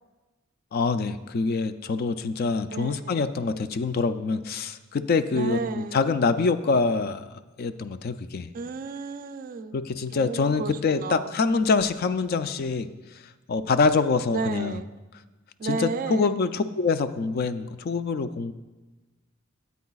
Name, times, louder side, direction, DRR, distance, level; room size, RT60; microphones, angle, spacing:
voice 1, 0.7-7.3 7.6-8.5 9.7-12.9 13.5-14.8 15.6-18.5, left 4 dB, 50° left, 11 dB, 0.4 m, -25 dB
voice 2, 2.7-3.3 5.3-6.0 8.5-9.8 10.1-11.3 14.3-14.9 15.6-16.4, right 4 dB, 45° right, 11 dB, 0.3 m, -33 dB
13.5 x 8.3 x 2.3 m, 1.2 s
head